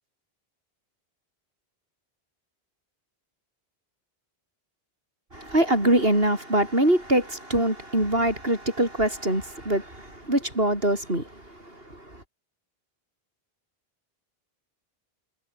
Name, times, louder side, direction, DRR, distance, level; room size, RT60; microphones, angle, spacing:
voice 1, 5.3-12.2, right 1 dB, 70° right, 8.3 m, -24 dB
omnidirectional pair, 1.0 m